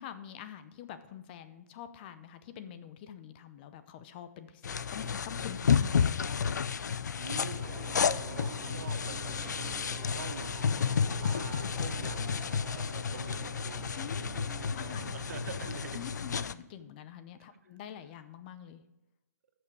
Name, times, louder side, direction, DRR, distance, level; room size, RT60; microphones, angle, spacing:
voice 1, 0.0-6.5 9.6-9.8 13.9-14.3 14.7-15.1 15.9-18.8, left 9 dB, 35° left, 11 dB, 0.7 m, -46 dB
sound 1, 4.6-16.5, left 6 dB, 90° left, 0.5 m, -31 dB
voice 2, 7.2-7.7 8.2-11.0 11.2-16.1 17.5-17.6, right 6 dB, 65° right, 9 dB, 1.1 m, -46 dB
sound 2, 7.6-15.9, right 11 dB, 40° right, 0.4 m, -48 dB
13.0 x 6.1 x 4.8 m, 0.95 s
hypercardioid pair, 150°, 9 cm